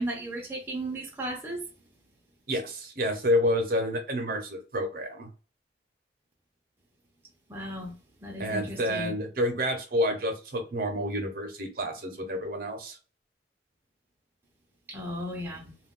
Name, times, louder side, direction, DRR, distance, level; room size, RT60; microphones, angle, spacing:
voice 1, 0.0-1.6 7.5-7.9 8.2-9.1 14.9-15.7, right 1 dB, 10° right, 0.5 m, -35 dB
voice 2, 2.5-5.3 8.4-13.0, equal, 55° right, 0.7 m, -29 dB
2.3 x 2.2 x 3.6 m
head